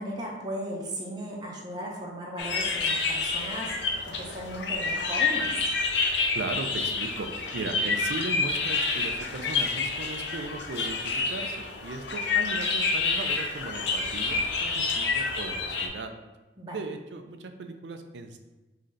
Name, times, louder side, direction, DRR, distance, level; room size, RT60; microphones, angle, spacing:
voice 1, 0.0-5.5 16.6-16.8, right 1 dB, 25° right, -3 dB, 0.7 m, -36 dB
sound 1, 2.4-15.9, left 4 dB, 80° left, 0.6 m, -28 dB
voice 2, 6.3-16.1 16.7-18.4, right 3 dB, 80° right, 7 dB, 0.5 m, -37 dB
3.8 x 3.2 x 3.9 m, 1.1 s
head